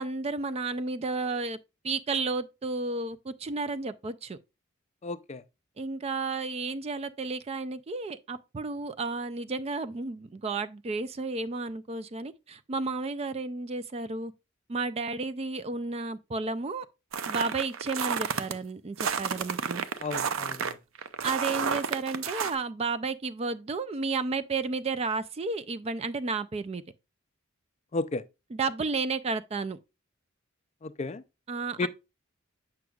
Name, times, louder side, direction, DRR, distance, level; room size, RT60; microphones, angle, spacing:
voice 1, 0.0-1.6 1.8-4.4 5.8-14.3 14.7-16.9 17.3-19.8 21.2-26.8 28.5-29.8 31.5-31.9, right 3 dB, 30° right, 0.4 m, -32 dB
voice 2, 5.0-5.4 20.0-20.8 27.9-28.2 30.8-31.2 31.8-31.9, left 3 dB, 35° left, 0.4 m, -33 dB
sound 1, 17.1-18.5 19.0-22.5, right 6 dB, 80° right, 0.6 m, -31 dB
7.7 x 5.9 x 2.3 m
head